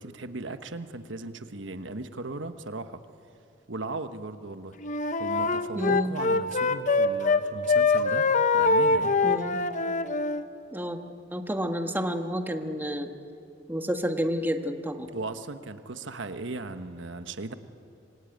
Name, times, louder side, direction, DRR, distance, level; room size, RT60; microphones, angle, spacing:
voice 1, 0.0-3.0 3.7-4.8 5.2-8.3 8.5-9.2 15.1-17.5, right 3 dB, 85° right, 10 dB, 1.2 m, -37 dB
Wind instrument woodwind instrument, 4.8-7.4 7.7-10.4, left 3 dB, 45° left, 1.0 m, -24 dB
voice 2, 5.7-6.2 9.2-9.6 10.7-11.0 11.3-13.1 13.7-15.1, equal, 10° right, 5 dB, 1.6 m, -30 dB
27.0 x 23.0 x 9.3 m, 2.6 s
head